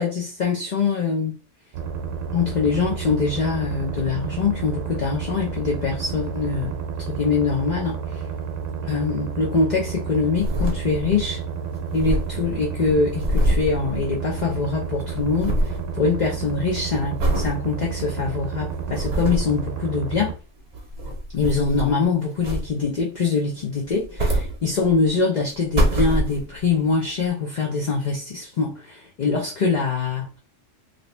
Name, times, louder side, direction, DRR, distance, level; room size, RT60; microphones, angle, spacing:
voice 1, 0.0-1.4 2.3-6.8 7.1-8.2 8.8-11.4 11.9-20.3 21.3-30.4, left 4 dB, 45° left, 0.6 m, -24 dB
sound 1, 1.7-20.3, right 6 dB, 80° right, 1.0 m, -31 dB
sound 2, 10.1-11.3 11.5-11.6 11.8-14.6 14.8-15.9 16.3-16.6 17.2-17.6 18.1-18.2 18.7-19.6 20.6-22.0 22.4-23.0 23.8-25.1 25.5-26.7 27.3-27.4, right 1 dB, 40° right, 0.8 m, -25 dB
2.9 x 2.6 x 3.2 m
omnidirectional pair, 1.3 m